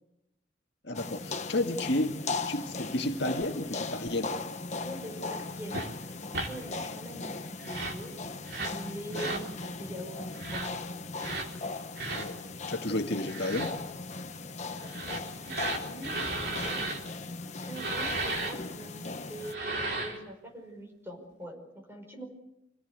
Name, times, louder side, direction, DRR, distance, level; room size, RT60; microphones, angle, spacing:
voice 1, 0.8-2.2 2.5-4.4 9.1-9.4 12.1-12.4 12.7-13.7, left 1 dB, 55° left, 3 dB, 1.9 m, -31 dB
sound 1, 0.9-19.5, left 3 dB, 35° left, 1.1 m, -38 dB
voice 2, 4.8-6.2 6.5-8.1 8.6-10.9 14.8-16.8 17.6-22.3, right 1 dB, 10° right, 1 dB, 5.3 m, -43 dB
sound 2, 5.7-5.9 6.3-6.5 7.6-8.0 8.5-8.8 9.1-9.5 10.3-10.7 11.2-11.5 12.0-12.3 13.2-13.7 14.8-17.0 17.7-18.5 19.4-20.2, right 2 dB, 55° right, 3.8 m, -34 dB
26.5 x 18.0 x 8.3 m, 0.86 s
head